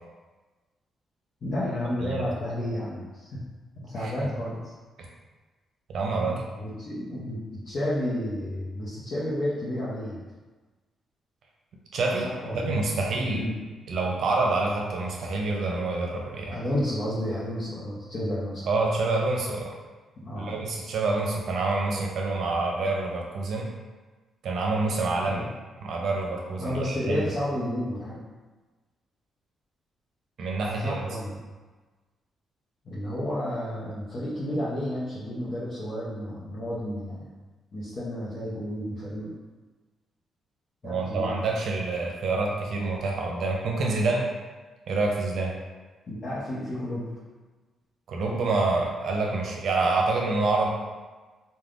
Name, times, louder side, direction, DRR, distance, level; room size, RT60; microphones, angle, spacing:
voice 1, 1.4-3.4 3.8-4.6 6.2-10.2 12.2-12.7 13.3-13.6 16.5-18.7 20.2-20.6 25.3-25.5 26.6-28.2 30.8-31.5 32.8-37.3 37.7-39.3 40.8-41.3 46.1-47.1, left 1 dB, 50° left, -9 dB, 0.7 m, -31 dB
voice 2, 5.9-6.4 11.9-13.5 13.9-16.5 18.7-19.7 20.4-23.7 24.4-25.4 25.8-27.3 30.4-31.0 40.8-44.3 44.9-45.5 48.1-50.7, right 3 dB, 70° right, -1 dB, 0.6 m, -27 dB
3.3 x 2.2 x 2.5 m, 1.3 s
cardioid pair, 85°, 0 cm